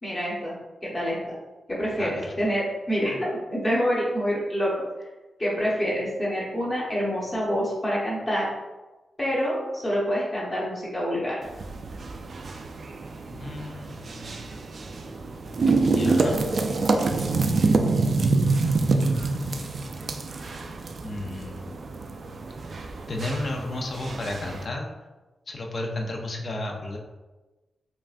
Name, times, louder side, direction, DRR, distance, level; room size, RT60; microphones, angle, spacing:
voice 1, 0.0-0.5 0.8-1.2 1.7-4.7 5.4-8.5 9.2-11.4, equal, 25° left, -6 dB, 1.0 m, -26 dB
voice 2, 2.0-2.3 13.3-14.3 15.9-16.4 21.0-21.7 23.1-25.0 25.5-27.0, left 2 dB, 40° left, 1 dB, 0.5 m, -33 dB
sound 1, 11.4-24.7, right 3 dB, 45° right, 0.3 m, -26 dB
5.4 x 2.4 x 2.5 m, 1.1 s
wide cardioid pair, 145°, 0 cm